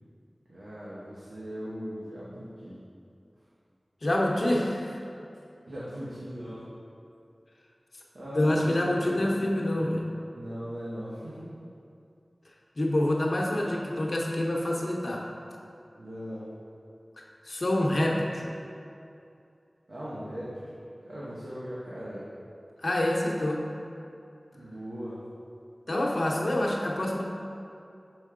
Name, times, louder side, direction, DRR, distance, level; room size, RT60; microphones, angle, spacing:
voice 1, 0.5-2.8 5.7-6.6 8.1-9.7 10.3-11.5 16.0-16.5 19.9-20.8 21.0-22.3 24.5-25.2, equal, 75° right, -9 dB, 1.0 m, -39 dB
voice 2, 4.0-5.0 8.3-10.1 12.8-15.3 17.4-18.5 22.8-23.7 25.9-27.2, left 1 dB, 55° left, -2 dB, 0.7 m, -27 dB
6.2 x 4.5 x 3.7 m, 2.6 s
wide cardioid pair, 60°, 0 cm